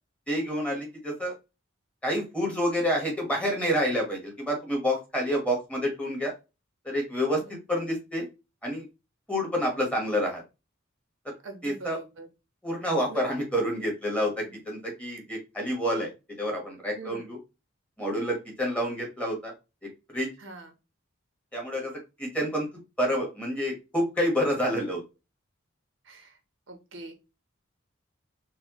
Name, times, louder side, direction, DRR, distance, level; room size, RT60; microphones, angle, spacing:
voice 1, 0.3-1.3 2.0-6.3 6.8-8.3 8.6-8.8 9.3-10.4 11.6-12.0 12.6-16.1 16.4-17.4 18.0-19.5 20.1-20.3 21.5-21.9 22.2-22.7 23.0-25.0, equal, 5° left, 0 dB, 1.1 m, -28 dB
voice 2, 11.4-12.3 13.1-13.2 17.0-17.3 20.4-20.7 26.0-26.4 26.7-27.1, right 2 dB, 65° right, 5 dB, 0.8 m, -43 dB
4.1 x 2.1 x 2.9 m, 0.27 s
head